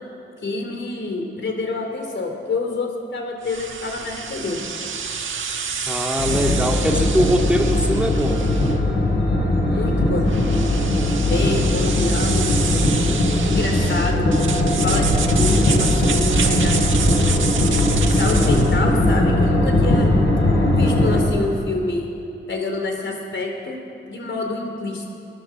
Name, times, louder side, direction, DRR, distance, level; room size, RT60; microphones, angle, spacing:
voice 1, 0.4-4.6 9.7-10.3 11.1-12.6 13.5-14.3 14.7-17.5 18.1-20.1 20.7-22.1 22.5-23.8 24.1-25.1, left 3 dB, 70° left, 3 dB, 4.1 m, -27 dB
sound 1, 3.4-18.8, right 5 dB, 75° right, 1.6 m, -28 dB
voice 2, 5.9-8.4, equal, 5° right, 1 dB, 2.2 m, -21 dB
sound 2, 6.2-21.2, left 1 dB, 85° left, 7.3 m, -19 dB
21.5 x 21.0 x 7.5 m, 2.6 s
wide cardioid pair, 95°, 20 cm